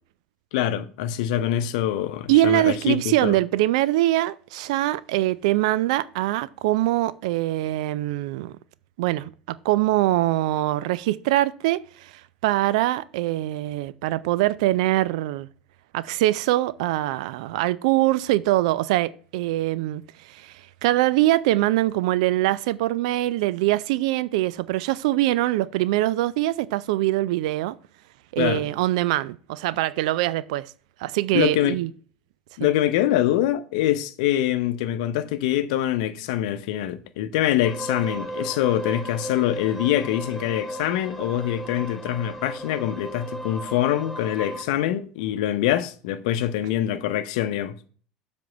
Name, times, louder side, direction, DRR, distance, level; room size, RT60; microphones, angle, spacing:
voice 1, 0.5-3.4 28.4-28.7 31.3-31.8 32.6-47.8, left 12 dB, 65° left, 0.7 m, -24 dB
voice 2, 2.3-8.5 9.0-12.1 12.4-15.5 15.9-20.0 20.3-20.5 20.8-27.7 28.3-30.7 31.0-31.9 32.6-32.7, right 16 dB, 65° right, 0.4 m, -23 dB
sound 1, 37.6-44.6, right 1 dB, ahead, 1.2 m, -35 dB
7.5 x 3.5 x 6.5 m
hypercardioid pair, 75°, 4 cm